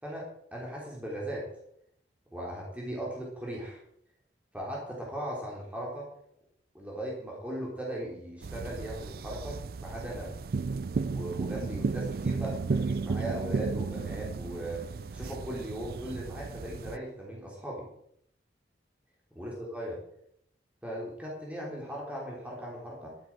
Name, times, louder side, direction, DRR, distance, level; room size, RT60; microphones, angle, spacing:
voice 1, 0.0-1.5 2.3-3.8 4.5-6.1 6.7-10.3 11.1-14.8 15.1-17.8 19.4-20.0 20.8-23.1, right 1 dB, 5° right, -4 dB, 3.5 m, -38 dB
sound 1, 8.4-17.0, right 4 dB, 55° right, 0.4 m, -34 dB
12.5 x 10.5 x 4.7 m, 0.71 s
head